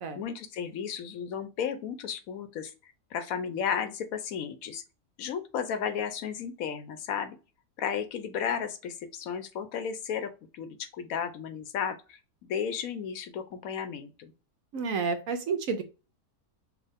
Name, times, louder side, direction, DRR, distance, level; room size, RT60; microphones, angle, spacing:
voice 1, 0.2-4.8 5.2-7.4 7.8-14.3, left 7 dB, 70° left, 9 dB, 1.1 m, -34 dB
voice 2, 14.7-15.8, right 5 dB, 70° right, 9 dB, 1.1 m, -30 dB
6.1 x 2.4 x 3.5 m, 0.32 s
omnidirectional pair, 1.6 m